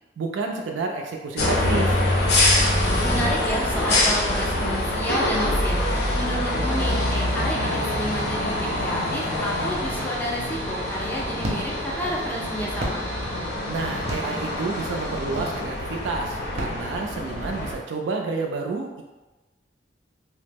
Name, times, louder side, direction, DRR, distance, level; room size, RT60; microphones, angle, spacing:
voice 1, 0.2-2.0 13.7-19.0, right 3 dB, 90° right, 1 dB, 0.3 m, -30 dB
sound 1, 1.4-17.7, left 1 dB, 60° left, 0.6 m, -25 dB
voice 2, 3.0-5.8 6.1-13.0, equal, 10° left, -3 dB, 0.4 m, -30 dB
sound 2, 4.7-15.6, equal, 90° left, 0.9 m, -35 dB
sound 3, 10.7-17.6, right 1 dB, 40° right, 0.5 m, -37 dB
2.8 x 2.0 x 3.3 m, 1.1 s
head